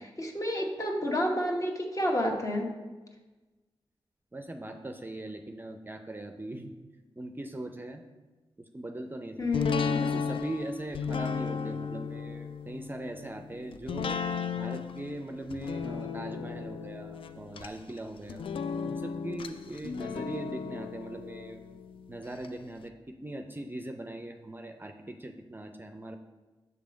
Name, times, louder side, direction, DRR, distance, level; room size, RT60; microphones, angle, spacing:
voice 1, 0.0-2.7 9.4-10.1, left 1 dB, 35° left, 1 dB, 1.3 m, -30 dB
voice 2, 4.3-6.7 7.2-8.0 8.6-9.4 10.0-14.2 14.6-18.5 18.8-21.6 22.1-26.2, right 1 dB, 20° right, 6 dB, 0.5 m, -40 dB
sound 1, 9.5-22.5 22.9-23.0, left 6 dB, 65° left, 0.4 m, -35 dB
6.6 x 3.5 x 5.1 m, 1.2 s
cardioid pair, 45°, 10 cm